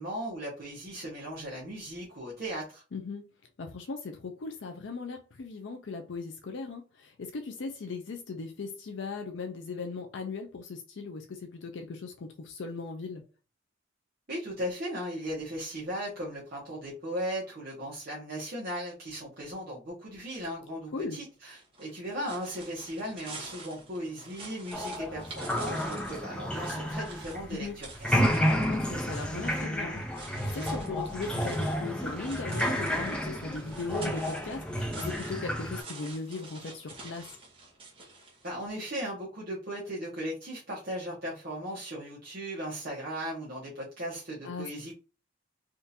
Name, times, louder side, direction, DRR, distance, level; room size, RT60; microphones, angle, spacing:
voice 1, 0.0-2.8 14.3-28.4 38.4-44.9, equal, 50° right, 1.0 m, -37 dB
voice 2, 2.9-3.3 3.6-13.2 20.9-21.2 27.5-27.8 28.7-37.3 44.4-44.7, left 4 dB, 70° left, 0.5 m, -38 dB
sound 1, 21.6-38.8, right 3 dB, 25° right, 1.1 m, -48 dB
sound 2, 24.7-27.7 27.9-35.8, equal, 5° left, 0.5 m, -31 dB
3.6 x 2.5 x 2.7 m
head